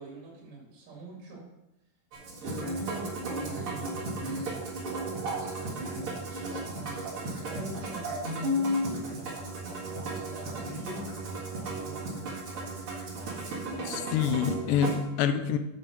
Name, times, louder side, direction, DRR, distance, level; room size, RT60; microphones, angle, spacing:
voice 1, 0.0-1.5 2.4-4.6 5.2-9.0 9.8-11.5 11.7-12.3, right 2 dB, 70° right, -4 dB, 3.9 m, -44 dB
Musical instrument, 2.1-15.0, right 1 dB, 45° right, 2.3 m, -34 dB
voice 2, 13.9-15.6, left 7 dB, 80° left, 9 dB, 2.3 m, -27 dB
8.8 x 4.9 x 6.2 m, 0.91 s
omnidirectional pair, 3.9 m